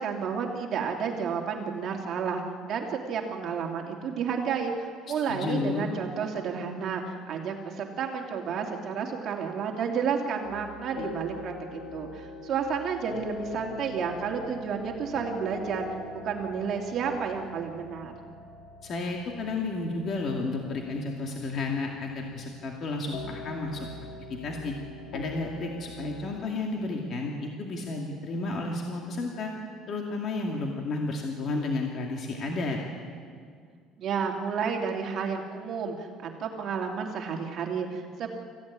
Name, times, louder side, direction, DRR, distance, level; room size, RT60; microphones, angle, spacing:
voice 1, 0.0-15.9 16.1-18.3 34.0-38.3, right 6 dB, 40° right, 1 dB, 2.9 m, -31 dB
voice 2, 5.1-5.9 18.8-23.9 24.3-24.7 25.1-29.5 29.9-32.8, left 3 dB, 40° left, 1 dB, 2.3 m, -32 dB
sound 1, 10.4-26.5, left 3 dB, 80° left, 2.7 m, -43 dB
25.0 x 15.5 x 9.8 m, 2.1 s
cardioid pair, 150°, 0 cm